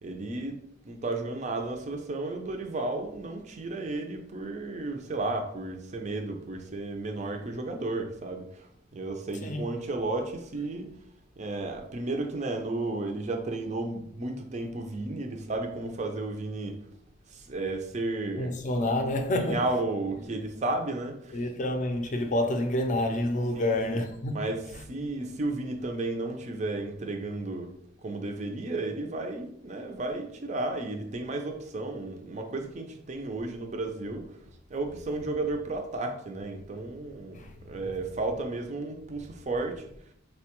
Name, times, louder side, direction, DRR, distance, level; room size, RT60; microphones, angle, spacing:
voice 1, 0.0-10.9 11.4-16.8 17.3-18.6 19.4-21.4 23.5-24.0 24.3-24.6 24.9-27.7 28.0-34.3 34.7-39.9, right 2 dB, 35° right, 0.4 m, -33 dB
voice 2, 18.4-19.6 21.3-24.4 37.4-37.5, left 1 dB, 40° left, 0.4 m, -28 dB
4.0 x 2.2 x 2.9 m
head